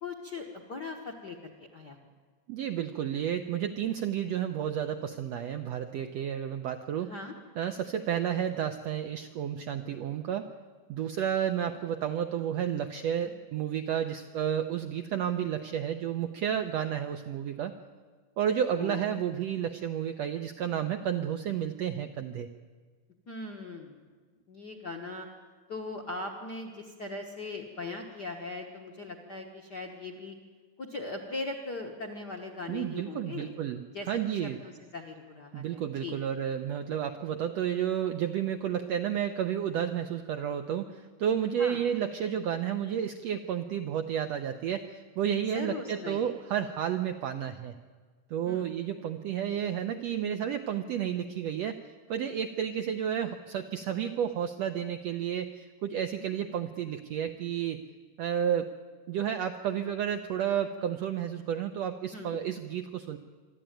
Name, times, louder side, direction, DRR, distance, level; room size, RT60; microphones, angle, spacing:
voice 1, 0.0-2.0 7.1-7.3 18.7-19.0 23.3-24.1 24.5-25.3 25.7-30.4 30.8-33.5 33.9-36.2 41.6-41.8 45.4-46.3 48.4-48.7 62.1-62.4, left 3 dB, 55° left, 3 dB, 1.1 m, -40 dB
voice 2, 2.5-7.1 7.6-10.5 10.9-17.7 18.4-22.5 32.7-34.6 35.5-47.7 48.3-51.8 52.1-57.8 58.2-58.7 59.1-63.2, right 9 dB, 80° right, 7 dB, 1.5 m, -31 dB
25.0 x 12.5 x 9.1 m, 1.5 s
omnidirectional pair, 3.9 m